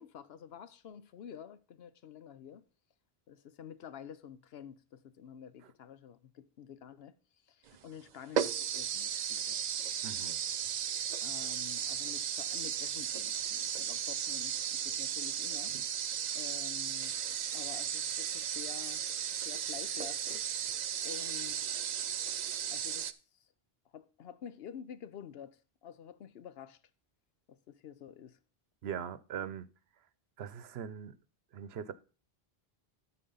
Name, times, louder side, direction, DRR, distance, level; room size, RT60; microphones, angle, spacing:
voice 1, 0.0-2.6 3.3-7.2 7.5-9.7 11.2-15.7 16.0-17.1 17.5-19.0 19.5-20.5 21.0-21.8 22.7-23.1 23.4-23.5 23.9-26.8 27.5-28.4, left 8 dB, 75° left, 0.9 m, -49 dB
sound 1, 7.7-7.8 8.3-23.1, right 9 dB, 55° right, 0.5 m, -35 dB
voice 2, 10.0-10.4 28.8-29.7 30.4-31.1 31.5-31.9, right 8 dB, 80° right, 0.9 m, -40 dB
12.5 x 4.3 x 5.4 m
omnidirectional pair, 1.0 m